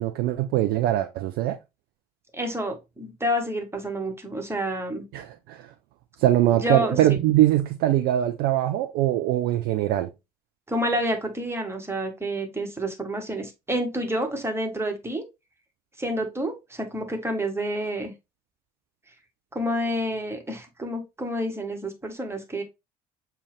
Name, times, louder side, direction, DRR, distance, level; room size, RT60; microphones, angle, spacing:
voice 1, 0.0-1.6 5.1-5.7 6.2-10.1, right 13 dB, 55° right, 0.5 m, -22 dB
voice 2, 2.3-5.0 6.5-7.2 10.7-15.2 16.0-18.1 19.5-22.6, equal, 15° right, 1.4 m, -29 dB
6.7 x 2.3 x 3.4 m
figure-of-eight pair, 55°, 20 cm